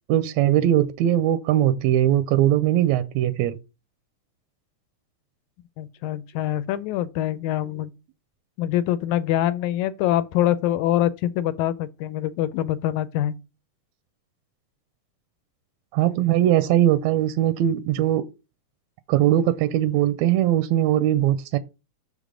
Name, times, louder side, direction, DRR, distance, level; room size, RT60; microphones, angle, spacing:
voice 1, 0.1-3.6 15.9-18.2 19.1-21.6, right 12 dB, 80° right, 1.7 m, -20 dB
voice 2, 5.8-7.9 8.6-13.4, left 12 dB, 80° left, 1.9 m, -24 dB
6.6 x 5.2 x 4.9 m
omnidirectional pair, 3.4 m